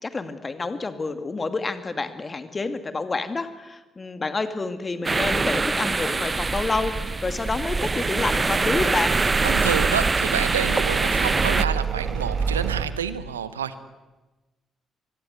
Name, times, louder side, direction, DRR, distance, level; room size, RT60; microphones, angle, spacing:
voice 1, 0.0-9.2, left 3 dB, 30° left, 9 dB, 2.4 m, -28 dB
sound 1, 5.0-11.6, right 3 dB, 30° right, 1.0 m, -24 dB
sound 2, 5.8-12.8, right 6 dB, 50° right, 2.2 m, -30 dB
voice 2, 9.4-13.8, right 8 dB, 85° right, 14 dB, 0.9 m, -29 dB
25.5 x 22.0 x 8.2 m, 1.2 s
figure-of-eight pair, 40°, 0 cm